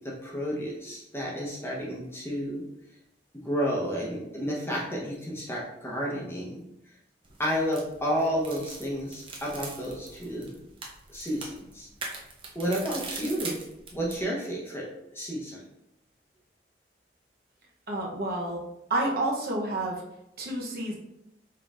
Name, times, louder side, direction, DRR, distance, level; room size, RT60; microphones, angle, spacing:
voice 1, 0.0-2.6 3.4-6.5 7.4-10.5 11.1-11.9 12.5-13.6 13.9-14.9 15.1-15.6, equal, 15° left, -4 dB, 1.0 m, -31 dB
sound 1, 7.2-14.2, right 3 dB, 30° right, 0.8 m, -42 dB
voice 2, 17.9-18.6 18.9-20.0 20.4-20.9, right 1 dB, 60° right, -1 dB, 0.9 m, -29 dB
5.4 x 3.9 x 2.5 m, 0.84 s
head